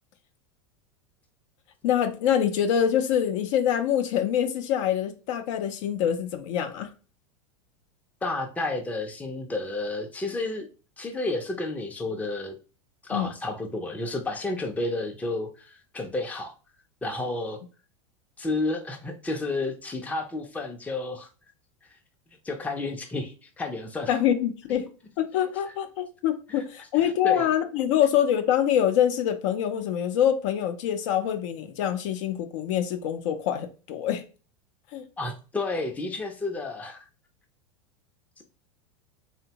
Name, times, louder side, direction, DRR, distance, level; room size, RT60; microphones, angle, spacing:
voice 1, 1.8-6.9 13.1-13.3 24.1-24.9 25.2-34.2 34.9-35.0, left 9 dB, 60° left, 0.5 m, -25 dB
voice 2, 8.2-10.7 11.0-12.6 13.0-16.5 17.0-17.6 18.4-21.3 22.4-24.2 26.5-26.6 26.9-27.5 35.2-37.1 38.4-38.5, left 2 dB, 10° left, 0.5 m, -31 dB
2.7 x 2.1 x 2.7 m
hypercardioid pair, 95°, 18 cm